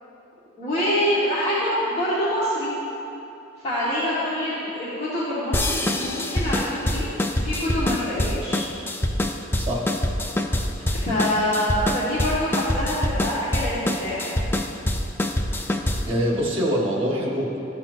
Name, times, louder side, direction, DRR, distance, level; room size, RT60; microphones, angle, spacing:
voice 1, 0.6-2.7 3.6-8.6 10.9-14.4, equal, 35° left, -12 dB, 1.4 m, -25 dB
sound 1, 5.5-16.2, left 1 dB, 10° left, 0.3 m, -25 dB
voice 2, 16.1-17.6, equal, 30° right, -3 dB, 1.4 m, -24 dB
13.0 x 5.8 x 2.6 m, 2.9 s
head